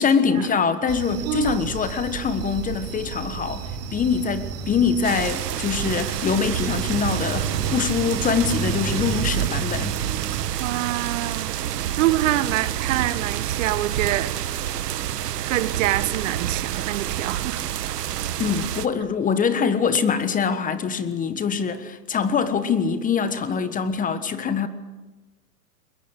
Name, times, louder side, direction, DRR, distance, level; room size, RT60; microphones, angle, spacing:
voice 1, 0.0-10.0 18.4-24.7, left 6 dB, 15° left, 1.3 m, -24 dB
sound 1, 0.9-10.4, right 5 dB, 30° right, 3.0 m, -33 dB
voice 2, 1.2-1.6 10.3-11.6 12.0-14.4 15.5-17.6, right 15 dB, 55° right, 1.2 m, -25 dB
sound 2, 5.0-18.9, right 11 dB, 80° right, 1.4 m, -28 dB
22.0 x 22.0 x 8.1 m
hypercardioid pair, 130°, 47 cm